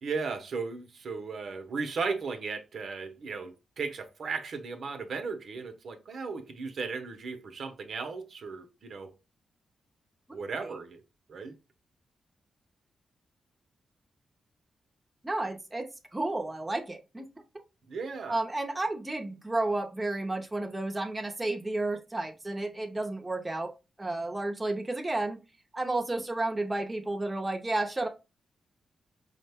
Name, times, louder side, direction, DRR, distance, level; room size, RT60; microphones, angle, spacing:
voice 1, 0.0-9.1 10.3-11.0 11.3-11.6 17.9-18.4, right 4 dB, 65° right, 0.7 m, -36 dB
voice 2, 15.2-15.9 16.1-17.2 18.3-23.7 24.0-25.4 25.7-28.1, right 2 dB, 15° right, 0.7 m, -32 dB
5.0 x 2.1 x 3.3 m
cardioid pair, 95°, 0 cm